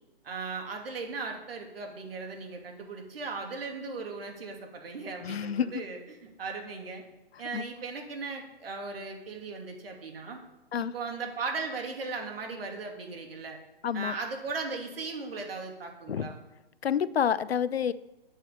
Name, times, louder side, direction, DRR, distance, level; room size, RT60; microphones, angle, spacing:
voice 1, 0.2-7.0 7.4-10.4 10.9-13.6 13.9-16.4, right 4 dB, 65° right, 2 dB, 2.8 m, -37 dB
voice 2, 5.2-5.7 7.5-7.6 10.7-10.9 13.8-14.1 16.1-16.3 16.8-17.9, left 8 dB, 80° left, 18 dB, 0.7 m, -28 dB
9.2 x 6.2 x 8.2 m, 1.0 s
hypercardioid pair, 135°, 31 cm